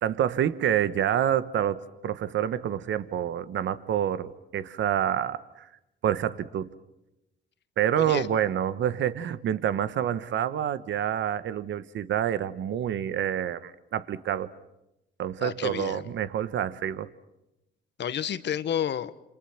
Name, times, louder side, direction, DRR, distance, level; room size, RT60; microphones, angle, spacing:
voice 1, 0.0-5.7 6.0-6.7 7.8-14.5 15.2-17.1, right 10 dB, 70° right, 14 dB, 1.3 m, -27 dB
voice 2, 7.9-8.3 15.4-16.1 18.0-19.1, left 9 dB, 60° left, 13 dB, 1.4 m, -30 dB
29.5 x 27.5 x 6.0 m, 0.90 s
cardioid pair, 90°, 20 cm